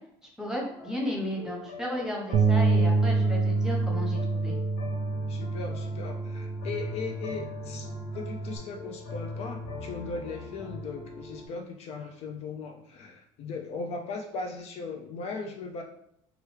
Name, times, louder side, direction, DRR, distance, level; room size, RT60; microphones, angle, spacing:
voice 1, 0.4-4.6, left 1 dB, 5° right, -1 dB, 0.9 m, -34 dB
sound 1, 0.6-11.5, left 3 dB, 85° left, 0.9 m, -42 dB
Bass guitar, 2.3-8.6, right 3 dB, 55° right, 0.4 m, -27 dB
voice 2, 5.3-15.8, left 4 dB, 55° left, 3 dB, 0.4 m, -38 dB
3.0 x 2.3 x 3.2 m, 0.72 s
supercardioid pair, 100°, 13 cm